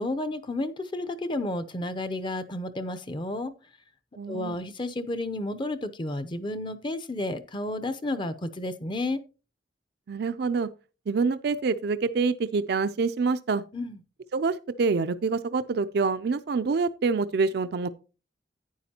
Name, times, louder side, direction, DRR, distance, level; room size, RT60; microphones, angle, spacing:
voice 1, 0.0-3.5 4.3-9.2 13.7-14.0, left 2 dB, 25° left, 0.6 m, -31 dB
voice 2, 4.2-4.6 10.1-10.7 11.1-13.6 14.3-17.9, right 4 dB, 60° right, 0.4 m, -26 dB
11.0 x 9.3 x 2.8 m
head